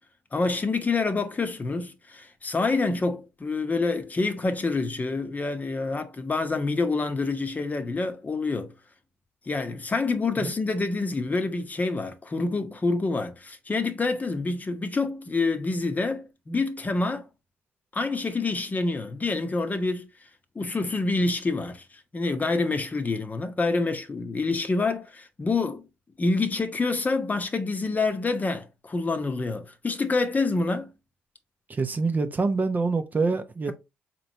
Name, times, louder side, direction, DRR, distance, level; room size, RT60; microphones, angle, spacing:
voice 1, 0.3-8.7 9.5-17.3 17.9-20.1 20.5-25.9 26.2-30.9, left 3 dB, 30° left, 0.8 m, -27 dB
voice 2, 31.7-33.7, right 4 dB, 30° right, 0.6 m, -25 dB
4.1 x 3.0 x 2.8 m
hypercardioid pair, 50°, 6 cm